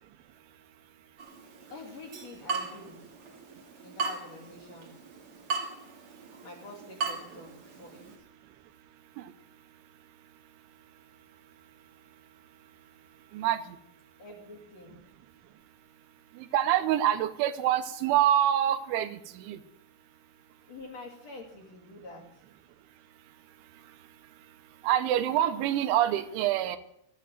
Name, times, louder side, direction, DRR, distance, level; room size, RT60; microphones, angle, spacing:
Water tap faucet / Drip, 1.2-8.2, right 4 dB, 45° right, 1.9 m, -38 dB
voice 1, 1.7-3.0 3.8-4.9 6.4-8.1 14.2-15.0 20.7-22.3, left 2 dB, 40° left, -1 dB, 3.1 m, -46 dB
voice 2, 13.3-13.8 16.4-19.6 24.8-26.8, right 11 dB, 90° right, 10 dB, 3.3 m, -26 dB
14.5 x 9.4 x 7.7 m, 0.77 s
omnidirectional pair, 5.3 m